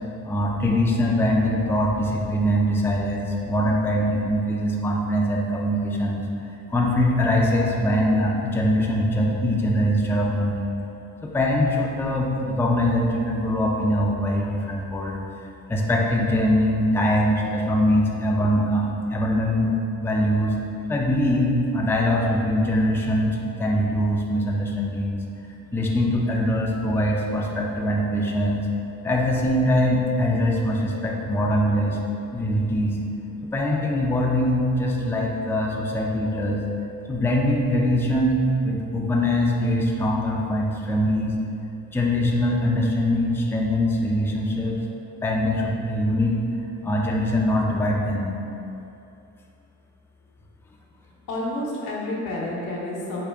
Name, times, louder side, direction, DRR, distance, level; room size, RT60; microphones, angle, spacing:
voice 1, 0.2-6.2 6.7-10.7 11.2-15.2 15.7-19.7 20.0-20.5 20.9-25.2 25.7-28.7 29.0-32.0 32.3-33.0 33.5-36.6 37.1-41.4 41.9-44.8 45.2-46.4 46.8-48.3, equal, 10° left, -2 dB, 0.4 m, -22 dB
voice 2, 51.3-53.3, left 1 dB, 85° left, -4 dB, 0.8 m, -29 dB
4.8 x 2.2 x 3.4 m, 2.7 s
cardioid pair, 90°, 30 cm